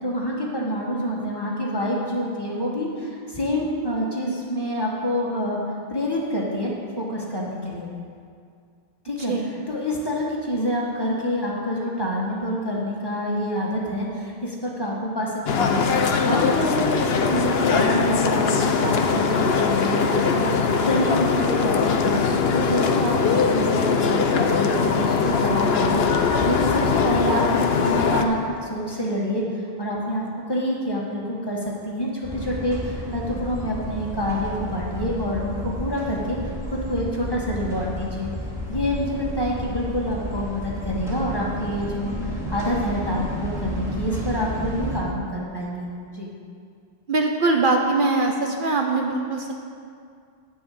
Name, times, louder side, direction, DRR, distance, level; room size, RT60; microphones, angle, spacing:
voice 1, 0.0-5.6 5.9-6.7 7.0-7.9 9.0-9.3 9.7-15.8 16.2-22.2 22.5-36.4 36.7-38.3 38.7-46.3, equal, 25° left, -3 dB, 1.8 m, -27 dB
sound 1, 15.5-28.2, left 5 dB, 75° left, 1.0 m, -21 dB
sound 2, 32.2-45.0, equal, 5° right, 2.4 m, -32 dB
voice 2, 47.1-49.5, right 3 dB, 55° right, 2 dB, 1.0 m, -22 dB
10.5 x 5.5 x 8.6 m, 2.3 s
omnidirectional pair, 1.0 m